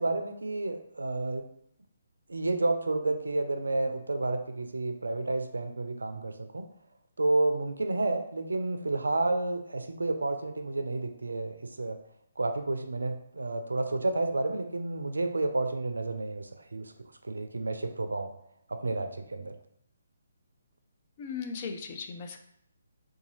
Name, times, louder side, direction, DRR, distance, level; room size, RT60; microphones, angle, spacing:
voice 1, 0.0-1.5 2.3-6.6 7.2-12.0 12.4-16.9 17.2-18.3 18.7-19.5, right 2 dB, 85° right, 7 dB, 0.4 m, -30 dB
voice 2, 21.2-22.4, left 5 dB, 35° left, 5 dB, 0.5 m, -37 dB
3.9 x 2.3 x 3.1 m, 0.71 s
figure-of-eight pair, 145°, 0 cm